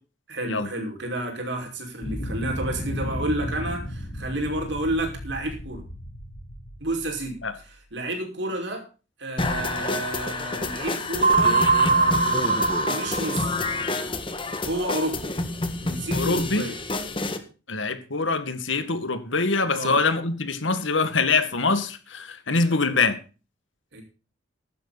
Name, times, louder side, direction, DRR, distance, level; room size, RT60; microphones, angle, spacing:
voice 1, 0.3-5.8 6.8-8.8 9.2-13.6 14.6-15.3 15.8-16.8 19.7-20.0 23.9-24.0, right 1 dB, 70° right, 2 dB, 5.5 m, -31 dB
sound 1, 2.0-7.8, equal, 55° left, 4.0 m, -35 dB
sound 2, 9.4-17.4, left 2 dB, 25° left, 1.7 m, -28 dB
sound 3, 11.2-13.8, right 4 dB, 50° right, 2.7 m, -21 dB
voice 2, 16.1-16.6 17.7-23.2, left 3 dB, 85° left, 10 dB, 2.1 m, -24 dB
15.5 x 12.0 x 4.2 m, 0.34 s
head